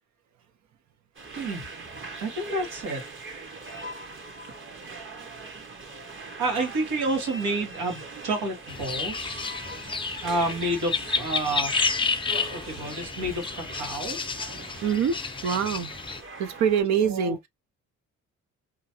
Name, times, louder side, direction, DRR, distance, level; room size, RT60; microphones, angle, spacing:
sound 1, 1.1-16.8, right 3 dB, 40° right, 1.0 m, -41 dB
voice 1, 2.2-3.0 6.4-9.5 10.2-11.7 12.5-14.2 17.0-17.3, right 2 dB, 90° right, 1.6 m, -29 dB
sound 2, 8.7-16.2, left 5 dB, 15° left, 0.4 m, -31 dB
voice 2, 14.8-15.2 15.4-15.9 16.4-17.4, right 7 dB, 65° right, 0.6 m, -24 dB
2.9 x 2.4 x 2.8 m
cardioid pair, 90°, 30 cm